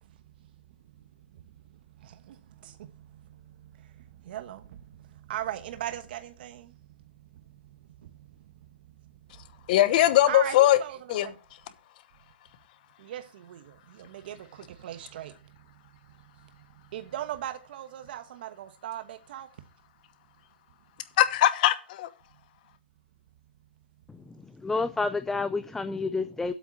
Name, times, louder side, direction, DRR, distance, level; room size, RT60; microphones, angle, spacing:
voice 1, 0.0-0.5 1.0-7.0 7.5-9.6 10.2-11.4 13.0-19.5, right 12 dB, 55° right, 1.2 m, -41 dB
voice 2, 9.7-10.8 11.1-11.3 21.2-22.1, left 13 dB, 50° left, 1.0 m, -20 dB
voice 3, 24.6-26.5, left 3 dB, 5° left, 0.4 m, -29 dB
8.1 x 5.8 x 7.4 m
hypercardioid pair, 140°, 6 cm